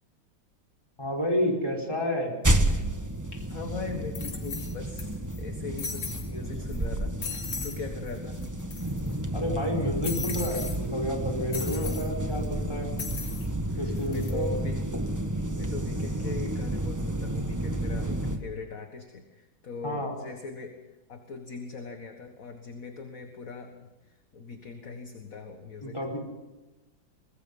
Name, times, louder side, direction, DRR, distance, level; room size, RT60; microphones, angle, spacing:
voice 1, 1.0-2.3 9.3-12.9 13.8-14.5 19.8-20.2 25.8-26.2, equal, 15° left, 2 dB, 4.9 m, -30 dB
sound 1, 2.4-18.4, right 1 dB, 10° right, 1.0 m, -31 dB
sound 2, 3.3-3.4 4.1-5.0 5.3-5.4 5.8-6.3 6.7-6.8 7.2-7.8 8.1-8.2 8.4-9.1 10.0-10.8 11.5-12.1 13.0-13.5 14.0-14.3, left 5 dB, 90° left, 3.5 m, -37 dB
voice 2, 3.5-7.2 7.6-8.4 11.7-12.0 13.6-14.8 15.5-20.8 21.1-23.7 24.1-26.2, left 4 dB, 45° left, 5 dB, 1.9 m, -40 dB
24.5 x 20.5 x 5.6 m, 1.1 s
omnidirectional pair, 2.2 m